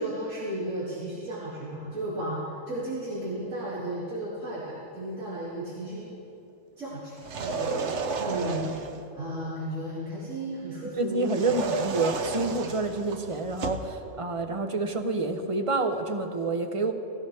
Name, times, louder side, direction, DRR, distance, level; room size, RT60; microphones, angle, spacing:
voice 1, 0.0-2.4 2.7-6.1 6.8-8.7 9.1-11.5, right 1 dB, 90° right, -10 dB, 3.1 m, -34 dB
sound 1, 7.2-9.0 11.2-13.9, right 4 dB, 70° right, 1.1 m, -32 dB
voice 2, 11.0-16.9, right 3 dB, 30° right, 6 dB, 0.8 m, -28 dB
19.5 x 15.5 x 3.5 m, 2.7 s
omnidirectional pair, 1.3 m